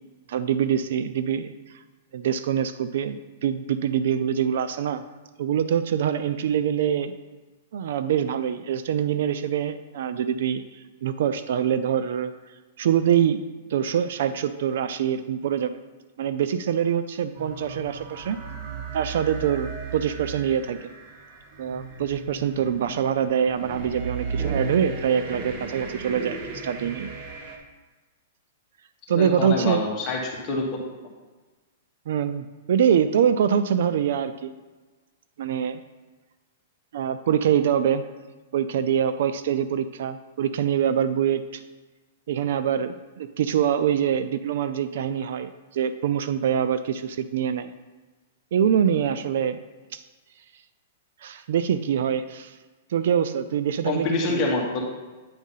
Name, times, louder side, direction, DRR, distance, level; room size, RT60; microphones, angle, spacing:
voice 1, 0.3-1.5 2.1-5.0 5.4-7.1 7.7-10.6 11.0-12.3 12.8-13.4 13.7-15.8 16.2-18.4 18.9-20.8 21.6-26.4 26.6-27.1 29.1-29.8 32.1-34.6 35.4-35.8 36.9-38.0 38.5-41.6 42.3-47.7 48.5-49.6 49.9-50.0 51.2-52.5 52.9-54.4, right 8 dB, 55° right, 12 dB, 0.3 m, -24 dB
sound 1, 17.4-27.6, right 4 dB, 30° right, 0.8 m, -35 dB
voice 2, 29.1-30.6 53.8-54.8, left 3 dB, 20° left, -2 dB, 1.3 m, -26 dB
8.6 x 3.6 x 5.5 m, 1.3 s
hypercardioid pair, 175°, 0 cm